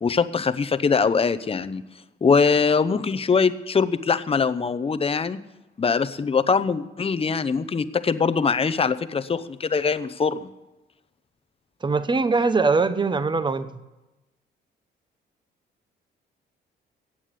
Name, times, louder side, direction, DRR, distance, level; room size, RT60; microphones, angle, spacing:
voice 1, 0.0-1.8 2.2-5.4 5.8-10.5, left 5 dB, 30° left, 13 dB, 0.8 m, -22 dB
voice 2, 11.8-13.7, right 4 dB, 25° right, 12 dB, 1.0 m, -22 dB
15.0 x 8.8 x 6.7 m, 1.0 s
cardioid pair, 90°, 20 cm